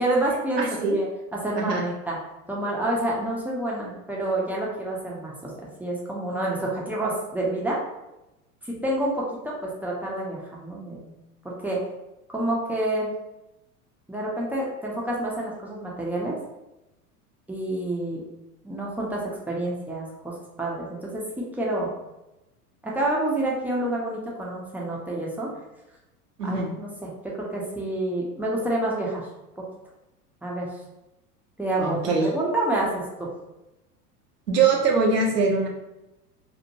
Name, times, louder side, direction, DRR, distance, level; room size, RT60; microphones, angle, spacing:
voice 1, 0.0-0.6 0.9-2.2 2.5-5.5 5.8-7.8 8.6-11.1 11.4-11.8 12.3-13.1 14.1-16.4 17.5-18.2 18.6-21.9 22.8-25.5 26.4-29.2 29.6-29.7 30.4-30.7 31.6-33.0, right 1 dB, 5° right, -5 dB, 0.5 m, -28 dB
voice 2, 0.6-1.0 1.6-1.9 26.4-26.7 31.8-32.3 34.5-35.7, right 4 dB, 85° right, 0 dB, 0.8 m, -22 dB
3.0 x 2.1 x 2.6 m, 0.96 s
hypercardioid pair, 85°, 46 cm